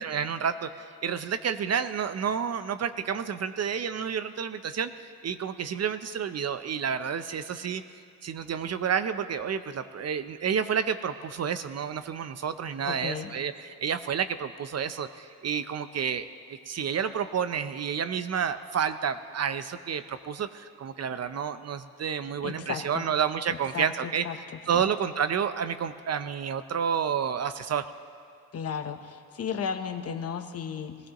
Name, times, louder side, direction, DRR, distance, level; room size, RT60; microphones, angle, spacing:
voice 1, 0.0-4.9 5.2-7.8 8.2-24.3 24.7-27.9, right 7 dB, 45° right, 11 dB, 0.5 m, -30 dB
voice 2, 12.8-13.3 22.4-23.0 23.5-24.4 24.7-24.8 28.5-31.0, left 7 dB, 40° left, 6 dB, 0.8 m, -34 dB
21.0 x 16.5 x 2.9 m, 2.3 s
cardioid pair, 125°, 37 cm